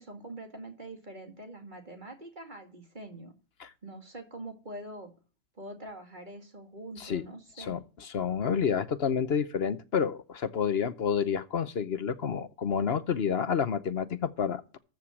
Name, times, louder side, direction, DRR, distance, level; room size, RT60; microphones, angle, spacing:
voice 1, 0.0-3.3 3.8-5.1 5.6-7.8, right 1 dB, 30° right, 2.5 m, -44 dB
voice 2, 7.6-14.8, left 7 dB, 50° left, 0.9 m, -29 dB
14.0 x 4.8 x 7.2 m
omnidirectional pair, 1.5 m